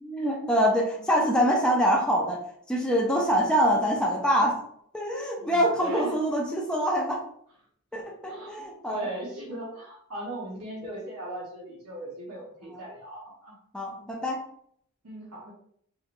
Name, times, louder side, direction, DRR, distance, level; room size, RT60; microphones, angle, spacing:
voice 1, 0.0-2.4 2.7-4.6 4.9-7.2 7.9-9.1 12.7-12.8 13.7-14.4, equal, 5° left, -2 dB, 0.4 m, -25 dB
voice 2, 5.4-6.2 8.3-8.6 8.9-13.5 14.0-14.1 15.0-15.5, right 1 dB, 85° right, -4 dB, 0.8 m, -38 dB
2.9 x 2.8 x 2.5 m, 0.66 s
head